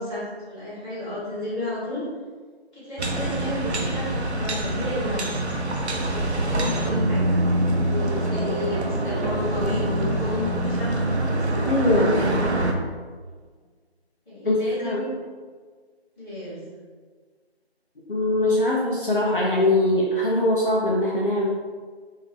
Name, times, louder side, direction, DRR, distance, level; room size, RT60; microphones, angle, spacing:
voice 1, 0.0-2.0 2.7-5.6 5.9-12.6 14.2-15.1 16.2-16.6, left 1 dB, 5° left, -24 dB, 1.2 m, -32 dB
sound 1, 3.0-12.7, right 1 dB, 85° right, 0.6 m, -25 dB
voice 2, 11.6-12.1 14.4-15.1 18.1-21.5, left 1 dB, 55° left, -4 dB, 0.6 m, -22 dB
3.4 x 2.7 x 3.3 m, 1.5 s
figure-of-eight pair, 165°, 32 cm